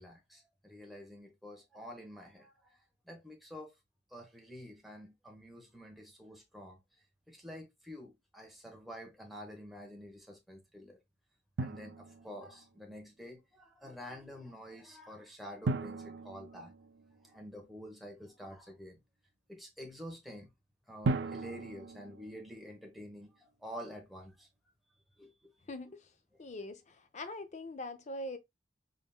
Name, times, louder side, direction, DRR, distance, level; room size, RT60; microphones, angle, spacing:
voice 1, 0.0-2.5 3.1-3.7 4.1-6.8 7.3-11.0 11.6-16.7 17.2-19.0 19.5-20.5 20.9-24.5 25.2-25.5, equal, ahead, 1.0 m, -48 dB
Drum, 11.6-12.7 15.6-17.5 21.0-23.0, right 3 dB, 80° right, 0.5 m, -37 dB
voice 2, 25.7-26.1 26.4-28.4, left 1 dB, 40° left, 0.6 m, -42 dB
4.1 x 3.6 x 2.2 m
head